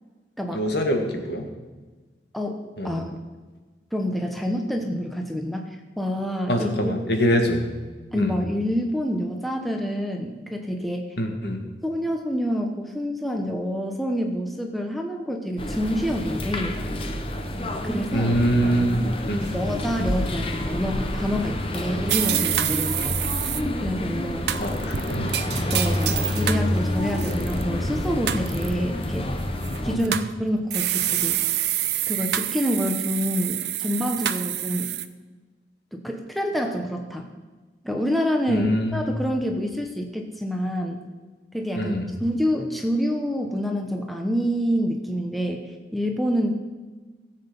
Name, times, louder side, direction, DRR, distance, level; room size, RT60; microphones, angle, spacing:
voice 1, 0.5-1.5 2.8-2.9 6.5-7.6 8.1-8.3 11.2-11.6 18.1-19.5 24.6-25.4 29.9-30.1 38.5-39.1 41.8-42.1, equal, 70° left, 3 dB, 1.8 m, -24 dB
voice 2, 2.3-3.2 3.9-7.0 8.1-11.0 11.8-16.8 17.8-18.4 19.5-23.2 23.8-24.5 25.5-29.3 29.8-30.1 30.4-31.4 32.1-34.9 35.9-37.3 37.8-41.0 41.5-45.6 45.9-46.5, equal, ahead, 2 dB, 0.9 m, -27 dB
sound 1, 15.6-30.0, left 1 dB, 30° left, 1.0 m, -28 dB
sound 2, 19.4-21.6, right 1 dB, 50° right, 3.1 m, -36 dB
sound 3, 22.1-23.6 24.5-26.7 27.1-27.6 28.3-28.7 29.6-30.3 30.7-35.0, right 12 dB, 70° right, 0.6 m, -27 dB
16.5 x 7.9 x 5.4 m, 1.3 s
head